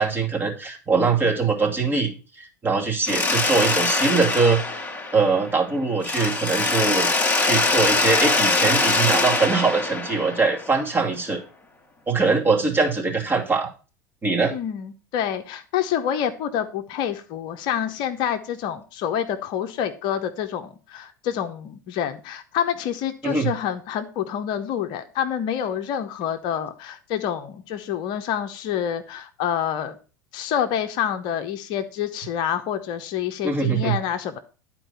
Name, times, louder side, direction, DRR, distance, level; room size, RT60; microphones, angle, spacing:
voice 1, 0.0-4.6 5.1-7.1 7.4-11.4 12.1-13.7 14.2-14.5 23.2-23.5 33.4-34.0, right 4 dB, 20° right, 0 dB, 2.3 m, -22 dB
Mechanisms, 3.0-5.6 6.0-10.9, left 3 dB, 15° left, 1.6 m, -23 dB
voice 2, 14.5-30.0 30.3-34.4, left 9 dB, 50° left, 8 dB, 0.8 m, -27 dB
10.0 x 4.5 x 5.3 m, 0.34 s
figure-of-eight pair, 80°, 10 cm